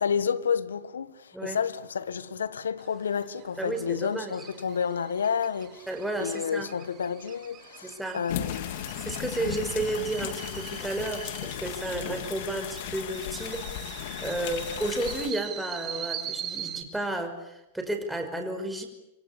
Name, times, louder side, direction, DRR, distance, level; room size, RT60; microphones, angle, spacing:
voice 1, 0.0-5.9 6.2-8.8 9.3-9.5 11.9-12.1 14.4-14.7, left 7 dB, 85° left, 1.4 m, -30 dB
sound 1, 2.8-16.8, right 9 dB, 35° right, 4.1 m, -42 dB
voice 2, 3.6-4.4 5.9-6.7 7.8-8.2 9.0-18.9, right 2 dB, 5° right, 5.6 m, -32 dB
sound 2, 8.3-15.3, left 11 dB, 60° left, 2.5 m, -36 dB
26.0 x 25.0 x 8.6 m
hypercardioid pair, 100°, 0 cm